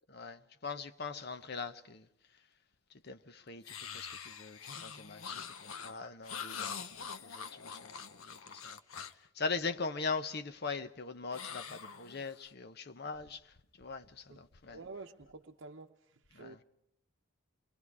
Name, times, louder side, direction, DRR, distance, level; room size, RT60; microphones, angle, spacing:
voice 1, 0.1-2.1 3.0-3.6 3.9-8.8 9.4-13.4 13.8-14.8 16.3-16.6, left 4 dB, 50° left, 0.9 m, -41 dB
sound 1, 3.6-9.3 11.3-12.5, left 6 dB, 90° left, 0.9 m, -44 dB
voice 2, 14.7-15.9 16.3-16.6, right 3 dB, 60° right, 0.9 m, -48 dB
29.0 x 22.5 x 4.8 m
head